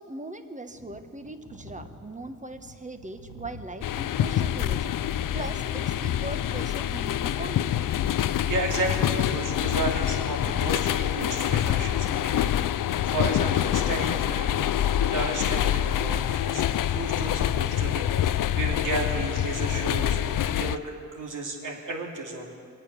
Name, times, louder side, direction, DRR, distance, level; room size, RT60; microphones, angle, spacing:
voice 1, 0.0-5.0 5.3-7.8, right 2 dB, 20° right, 8 dB, 1.3 m, -40 dB
sound 1, 0.7-18.8, left 1 dB, 90° left, 1.8 m, -48 dB
sound 2, 3.8-20.8, left 11 dB, 65° left, 0.5 m, -26 dB
voice 2, 8.5-14.7 15.0-22.5, right 2 dB, 60° right, 0 dB, 2.8 m, -33 dB
23.0 x 8.9 x 6.9 m, 2.4 s
supercardioid pair, 50°, 35 cm